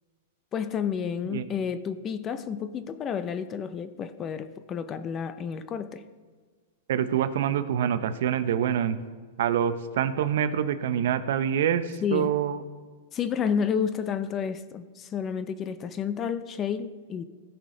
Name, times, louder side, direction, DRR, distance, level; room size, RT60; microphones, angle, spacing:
voice 1, 0.5-6.0 12.0-12.3 13.1-17.2, left 7 dB, 20° left, 13 dB, 0.4 m, -30 dB
voice 2, 6.9-9.0 9.4-12.6, right 9 dB, 65° right, 12 dB, 0.6 m, -26 dB
16.0 x 5.8 x 3.8 m, 1.5 s
supercardioid pair, 155°, 0 cm